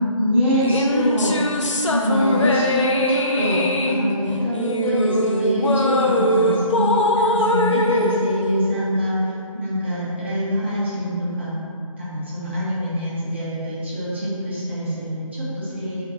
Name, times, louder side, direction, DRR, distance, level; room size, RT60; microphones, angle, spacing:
voice 1, 0.0-1.5 1.9-9.2 9.5-11.5 12.0-16.0, equal, 20° right, -10 dB, 0.6 m, -24 dB
sound 1, 0.6-9.2, left 1 dB, 60° left, 0.4 m, -21 dB
2.8 x 2.5 x 4.2 m, 2.6 s
figure-of-eight pair, 165°, 18 cm